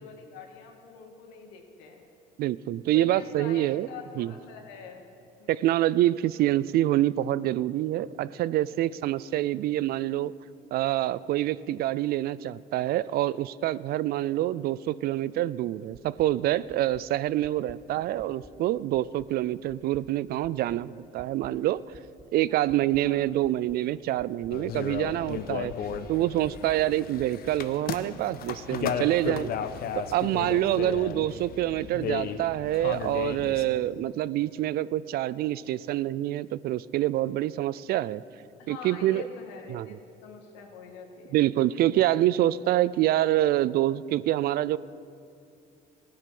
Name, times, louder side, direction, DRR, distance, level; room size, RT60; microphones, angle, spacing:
voice 1, 0.0-2.0 2.9-5.1 5.4-5.6 17.6-18.0 22.5-22.6 23.0-23.2 26.6-26.9 30.5-30.9 38.6-40.0 40.2-41.4, left 6 dB, 90° left, 3 dB, 2.0 m, -45 dB
voice 2, 2.4-3.9 4.2-4.3 5.5-10.3 10.7-21.8 22.3-25.7 26.1-29.5 30.0-38.2 38.7-39.2 39.7-39.9 41.3-44.8, right 14 dB, 60° right, 19 dB, 0.4 m, -26 dB
sound 1, 15.9-16.3 16.7-17.0 17.4-17.8 18.2-18.5 18.9-19.3 19.7-20.0 20.4-20.8 21.2-21.5 21.9-22.3 22.7-23.0 23.4-23.8 24.2-24.5 24.9-25.3 25.7-26.0 26.4-26.8 27.2-27.5 27.9-28.0, right 3 dB, 15° right, 0.7 m, -52 dB
sound 2, 24.5-33.6, left 7 dB, 60° left, 0.9 m, -35 dB
16.5 x 9.8 x 6.0 m, 2.5 s
cardioid pair, 95°, 18 cm